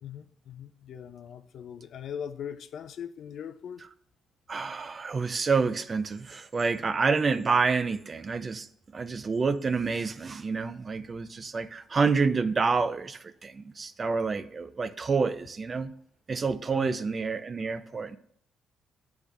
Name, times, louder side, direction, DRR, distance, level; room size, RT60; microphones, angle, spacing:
voice 1, 0.0-3.8 16.7-17.0, left 8 dB, 65° left, 0.5 m, -40 dB
voice 2, 4.5-8.7 8.9-15.9 16.3-18.2, right 4 dB, 35° right, 0.5 m, -28 dB
8.4 x 3.5 x 6.1 m
cardioid pair, 90°, 0 cm